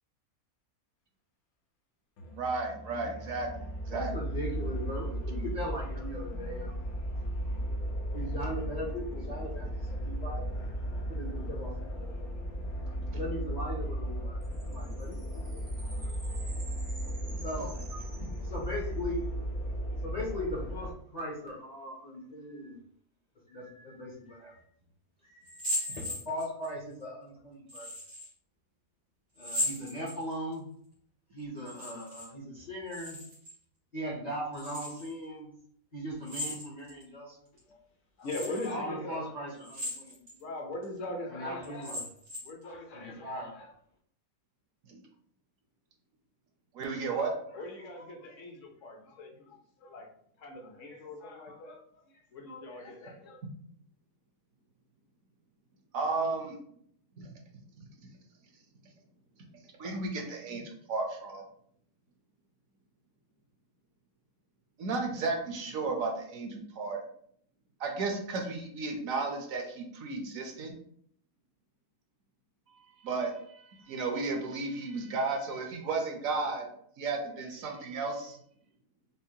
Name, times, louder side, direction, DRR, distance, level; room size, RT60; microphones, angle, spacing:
sound 1, 2.2-20.9, right 1 dB, 85° left, 1.2 m, -36 dB
voice 1, 2.3-4.1 17.3-17.4 18.2-18.3 19.7-19.8 25.9-26.0 44.9-45.0 46.7-47.3 55.9-56.6 57.2-57.3 57.8-57.9 59.8-61.4 64.8-67.0 67.8-70.7 72.7-76.7 77.0-78.4, right 3 dB, 70° right, 3 dB, 1.1 m, -34 dB
voice 2, 3.9-6.7 8.1-10.5 11.1-12.3 13.1-14.4 14.7-15.6 16.0-16.1 17.4-17.7 18.5-19.3 20.0-22.8 23.5-24.6 25.3-27.9 29.4-30.6 31.3-33.2 33.9-35.5 35.9-37.5 38.7-40.2 41.3-42.0 42.9-43.6, equal, 40° left, -4 dB, 0.6 m, -39 dB
sound 2, 14.4-19.0, right 3 dB, 45° right, 0.4 m, -51 dB
sound 3, 25.4-26.7 27.7-28.3 29.4-30.5 31.6-32.3 32.6-33.5 34.5-35.1 36.2-37.0 37.6-37.7 38.2-38.7 39.6-40.4 40.8-40.9 41.6-42.6, left 1 dB, 90° right, 2.2 m, -37 dB
voice 3, 38.2-39.3 40.3-42.0 42.4-43.7 47.1-50.1 50.4-51.8 52.3-53.4, left 2 dB, 65° left, 2 dB, 1.0 m, -41 dB
5.3 x 2.1 x 2.7 m, 0.64 s
omnidirectional pair, 1.5 m